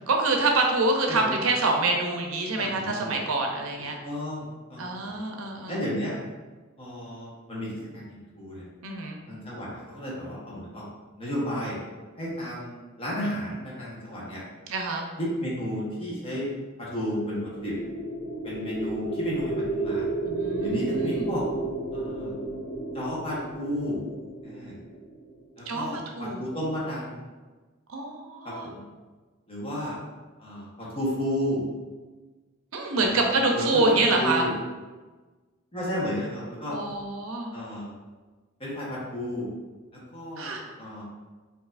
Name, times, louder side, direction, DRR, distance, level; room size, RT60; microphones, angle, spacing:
voice 1, 0.1-4.0 4.8-5.8 8.8-9.2 14.7-15.0 20.2-21.3 25.7-26.4 27.9-28.7 32.7-34.4 36.7-37.5 40.4-40.6, right 2 dB, 75° right, 2 dB, 0.6 m, -26 dB
voice 2, 2.6-3.2 4.0-5.2 5.7-6.1 6.8-8.0 8.3-8.6 9.3-10.8 11.2-11.8 12.2-14.4 15.2-16.5 16.8-17.7 18.4-20.1 20.6-21.4 21.9-22.3 22.9-24.0 24.4-24.7 25.6-27.2 28.4-28.8 29.5-30.0 30.4-31.6 33.1-34.5 35.7-36.8 37.5-37.9 38.6-39.5 40.1-41.0, equal, 25° left, -6 dB, 1.1 m, -32 dB
sound 1, 17.3-25.4, right 2 dB, 90° left, 0.9 m, -32 dB
4.7 x 2.7 x 2.5 m, 1.3 s
head